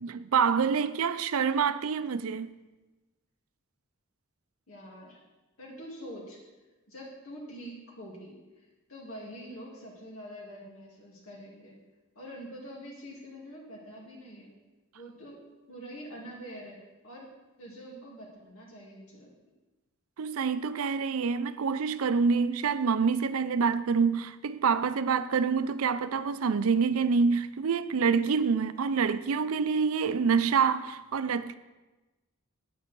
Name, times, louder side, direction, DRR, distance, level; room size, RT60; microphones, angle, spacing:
voice 1, 0.0-2.5 20.2-31.5, right 5 dB, 85° right, 0.5 m, -26 dB
voice 2, 4.7-5.2 5.6-6.4 6.9-11.8 12.1-14.5 14.9-15.4 15.7-16.8 17.0-17.3 17.6-19.3, equal, 85° left, 2.7 m, -45 dB
9.3 x 8.6 x 4.6 m
head